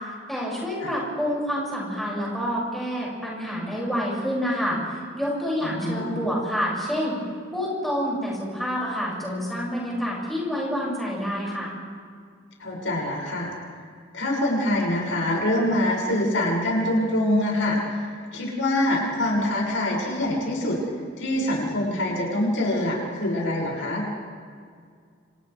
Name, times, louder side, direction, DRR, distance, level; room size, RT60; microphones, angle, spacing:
voice 1, 0.3-7.2 7.5-11.7, equal, ahead, -5 dB, 7.1 m, -28 dB
voice 2, 5.6-6.3 12.6-13.5 14.1-20.8 21.2-24.1, left 1 dB, 85° left, -3 dB, 7.2 m, -25 dB
30.0 x 28.0 x 3.6 m, 2.1 s
head